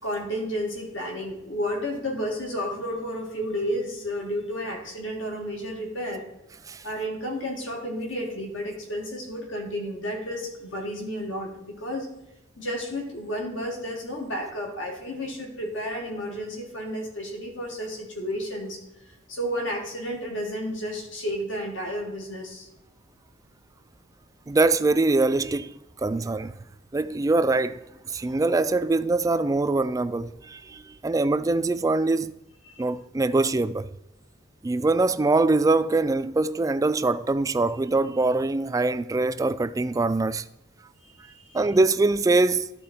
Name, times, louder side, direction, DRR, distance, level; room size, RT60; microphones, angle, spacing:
voice 1, 0.0-6.3 6.8-12.1 12.6-18.8 19.1-22.7 32.7-32.8 41.3-41.6, equal, 80° left, 2.2 m, -32 dB
voice 2, 24.5-26.5 26.9-32.3 32.8-33.9 34.6-40.4 41.5-42.7, right 3 dB, 20° right, 0.3 m, -23 dB
13.0 x 4.3 x 4.3 m
head